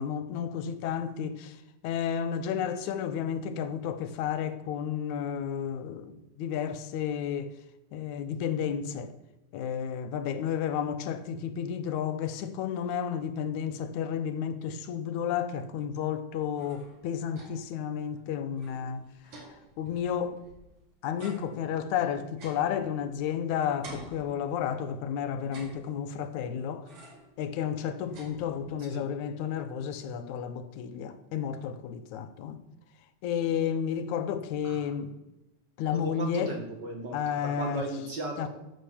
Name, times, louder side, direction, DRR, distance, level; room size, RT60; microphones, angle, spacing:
voice 1, 0.0-7.6 7.9-9.1 9.5-19.3 19.8-20.4 21.0-26.9 27.4-32.6 33.2-35.1 35.8-36.6 37.1-37.9 38.4-38.5, left 8 dB, 80° left, 2.2 m, -32 dB
sound 1, 16.3-17.8 18.1-18.2 18.5-20.7 21.2-23.4 23.8-24.9 25.4-26.3 26.9-27.4 27.7-28.9, right 2 dB, 75° right, 4.0 m, -50 dB
voice 2, 35.9-38.5, right 2 dB, 45° right, 2.0 m, -36 dB
11.0 x 7.6 x 7.1 m
omnidirectional pair, 3.3 m